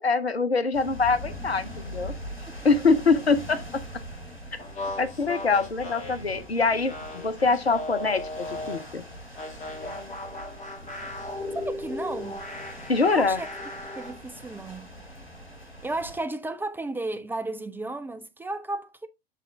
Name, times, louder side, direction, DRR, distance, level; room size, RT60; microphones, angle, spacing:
voice 1, 0.0-2.1 2.6-3.6 4.5-4.6 5.0-9.0 12.9-13.4, left 4 dB, 85° left, 0.7 m, -24 dB
sound 1, 0.7-16.2, equal, 90° right, 2.6 m, -42 dB
sound 2, 4.6-8.9 9.4-14.2, left 2 dB, 25° left, 2.2 m, -37 dB
voice 2, 11.5-12.4 13.0-13.5 14.0-14.9 15.8-19.1, right 2 dB, 5° right, 0.4 m, -33 dB
6.8 x 4.9 x 3.4 m
figure-of-eight pair, 85°, 30 cm